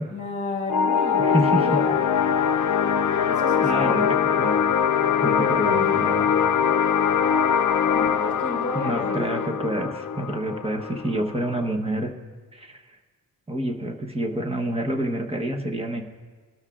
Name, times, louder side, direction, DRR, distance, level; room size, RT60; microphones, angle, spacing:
voice 1, 0.1-2.0 3.3-4.0 7.9-9.4, left 2 dB, 20° left, -2 dB, 2.2 m, -32 dB
sound 1, 0.7-11.7, left 7 dB, 55° left, 0.5 m, -22 dB
voice 2, 1.2-1.7 3.1-4.5 5.2-6.2 8.7-12.1 12.5-12.8 13.5-16.0, right 1 dB, 15° right, 4 dB, 1.0 m, -28 dB
22.5 x 13.0 x 2.4 m, 1.5 s
wide cardioid pair, 150°, 36 cm